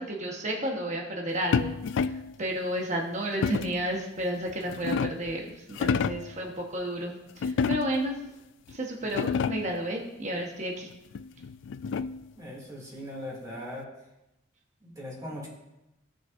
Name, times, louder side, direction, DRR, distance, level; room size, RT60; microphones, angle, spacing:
voice 1, 0.0-8.1 8.7-10.9, right 1 dB, 35° right, 0 dB, 1.3 m, -32 dB
sound 1, 1.5-2.3 3.4-3.9 4.5-5.3 5.7-6.3 7.4-8.1 8.7-8.8 9.0-9.8 11.1-12.3, left 5 dB, 65° left, 0.3 m, -29 dB
voice 2, 12.4-13.9 14.8-15.5, left 1 dB, 20° right, -4 dB, 2.5 m, -39 dB
17.0 x 6.3 x 2.6 m, 0.93 s
head